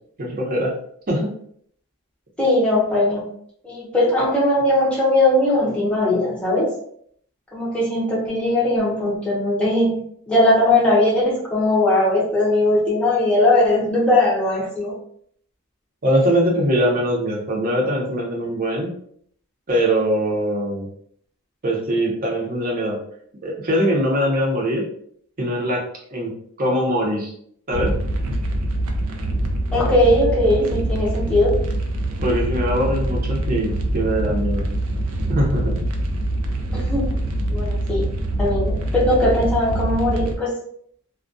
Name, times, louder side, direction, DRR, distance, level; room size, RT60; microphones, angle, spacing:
voice 1, 0.2-0.7 1.1-1.3 16.0-18.9 19.7-20.9 21.6-23.0 23.4-24.8 25.4-25.8 26.1-26.3 26.6-27.3 27.7-27.9 32.2-34.6 35.3-35.7, equal, 40° right, -2 dB, 0.6 m, -22 dB
voice 2, 2.4-3.3 3.6-6.7 7.5-9.9 10.3-14.9 29.7-31.6 36.7-37.2 37.5-38.1 38.4-40.6, left 1 dB, 5° left, -6 dB, 0.6 m, -19 dB
sound 1, 27.7-40.3, right 1 dB, 80° right, 0.5 m, -24 dB
2.2 x 2.2 x 2.5 m, 0.64 s
head